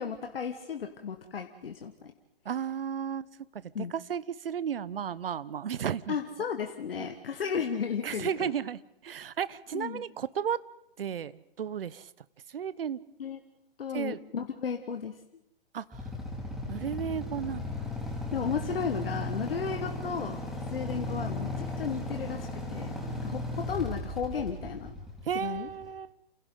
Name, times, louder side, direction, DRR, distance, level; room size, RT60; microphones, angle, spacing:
voice 1, 0.0-2.1 3.7-3.9 6.1-8.5 9.7-10.0 13.2-13.4 13.8-15.2 18.3-20.4 20.7-23.0 23.2-24.9 25.3-25.7, left 6 dB, 70° left, 6 dB, 1.7 m, -34 dB
voice 2, 2.4-3.3 3.8-6.2 7.0-7.1 8.0-10.6 11.0-12.1 12.5-13.0 13.9-14.2 15.7-16.0 16.7-17.8 25.2-26.1, right 8 dB, 70° right, 18 dB, 1.0 m, -34 dB
Motorcycle / Idling, 15.9-25.8, left 2 dB, ahead, 4.1 m, -36 dB
29.5 x 27.5 x 3.9 m, 0.77 s
figure-of-eight pair, 130°, 30 cm